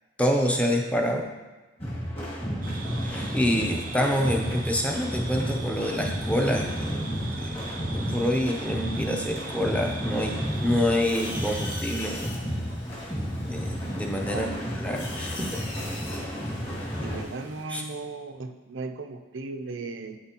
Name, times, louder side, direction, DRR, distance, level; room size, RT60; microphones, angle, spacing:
voice 1, 0.2-1.3 3.0-7.0 7.3-12.3 13.4-14.5 14.7-15.6 17.7-17.8, equal, 5° left, 2 dB, 0.7 m, -27 dB
sound 1, 1.8-17.2, equal, 30° left, 1.8 m, -32 dB
sound 2, 2.6-11.8, right 3 dB, 45° right, 0.6 m, -40 dB
sound 3, 10.4-17.6, left 2 dB, 65° left, 1.4 m, -42 dB
voice 2, 14.3-14.6 17.0-20.2, right 3 dB, 85° right, 6 dB, 0.6 m, -36 dB
11.5 x 4.2 x 3.0 m, 1.2 s
head